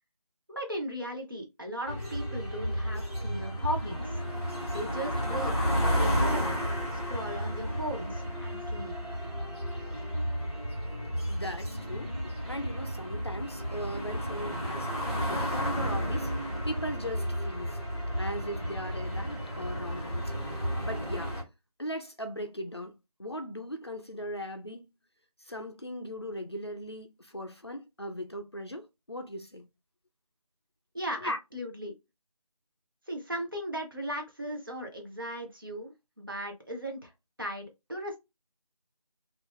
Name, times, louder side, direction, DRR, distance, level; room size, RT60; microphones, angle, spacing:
voice 1, 0.5-4.2 4.7-6.6 6.9-9.1 30.9-31.9 33.1-37.1 37.4-38.2, equal, 35° right, 0.8 m, -37 dB
sound 1, 1.8-21.4, equal, 10° left, 1.0 m, -32 dB
voice 2, 11.3-14.9 15.3-17.8 18.2-20.4 20.8-21.4 21.8-22.9 23.2-24.9 25.5-29.7 31.2-31.4, equal, 45° left, 0.5 m, -38 dB
2.5 x 2.5 x 3.6 m
figure-of-eight pair, 175°, 19 cm